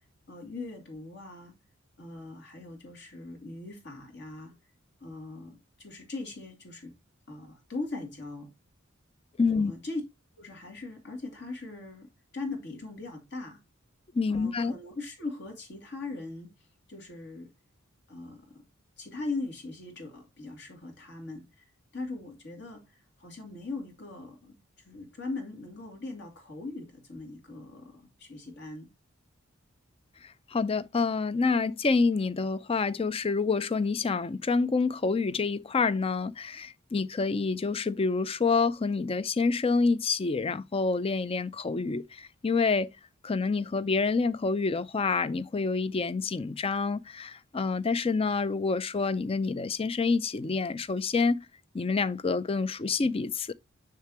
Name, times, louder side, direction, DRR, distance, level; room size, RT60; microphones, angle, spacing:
voice 1, 0.3-1.5 2.0-4.5 5.0-6.9 7.3-8.5 9.5-10.0 10.4-12.1 12.3-13.6 14.3-16.5 16.9-17.5 18.1-18.6 19.0-21.6 21.9-24.5 24.8-28.9, left 3 dB, 55° left, 2.7 m, -40 dB
voice 2, 9.4-9.7 14.1-14.7 30.5-42.9 43.2-51.5 51.7-53.5, left 4 dB, 30° left, 0.4 m, -27 dB
6.8 x 6.6 x 3.0 m
head